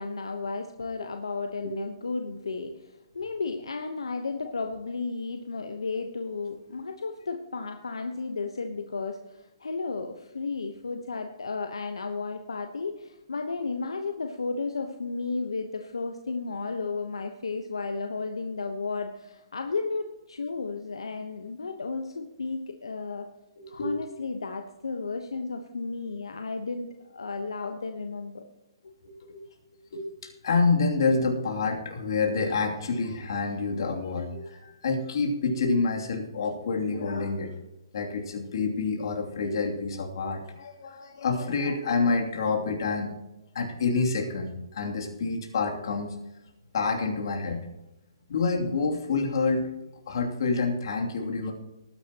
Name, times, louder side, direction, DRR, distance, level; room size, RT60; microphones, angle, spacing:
voice 1, 0.0-23.3 23.7-28.4 28.8-28.9, left 4 dB, 85° left, 5 dB, 1.1 m, -33 dB
voice 2, 23.6-23.9 29.0-29.4 29.9-30.0 30.4-37.5 37.9-43.1 43.5-46.2 46.7-47.6 48.3-49.7 50.1-51.5, left 4 dB, 60° left, 1 dB, 2.8 m, -28 dB
19.0 x 9.8 x 3.0 m, 0.98 s
hypercardioid pair, 145°, 3 cm